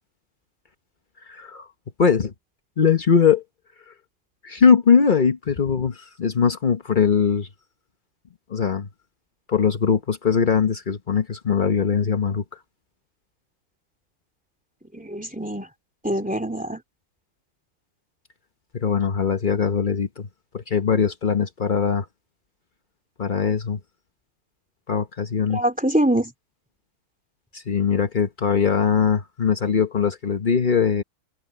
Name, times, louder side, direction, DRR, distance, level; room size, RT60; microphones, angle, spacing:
voice 1, 1.3-1.7 2.0-2.3 2.8-3.4 4.4-7.5 8.5-8.9 9.5-12.4 18.7-20.3 20.5-22.1 23.2-23.8 24.9-25.6 27.5-31.0, left 6 dB, 75° left, 0.4 m, -21 dB
voice 2, 14.9-15.7 16.0-16.8 25.5-26.3, right 1 dB, 5° right, 2.8 m, -24 dB
omnidirectional pair, 2.4 m